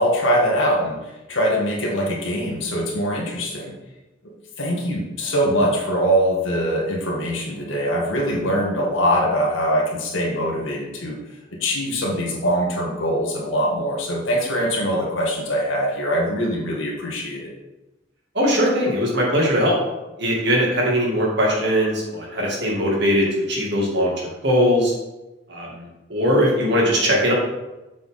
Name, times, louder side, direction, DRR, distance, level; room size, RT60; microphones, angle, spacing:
voice 1, 0.0-3.8 4.2-11.2 11.5-17.5, equal, 80° left, -2 dB, 2.0 m, -23 dB
voice 2, 18.3-19.8 20.2-24.9 25.5-27.3, equal, 60° right, -3 dB, 2.4 m, -20 dB
7.5 x 6.1 x 3.8 m, 1.0 s
head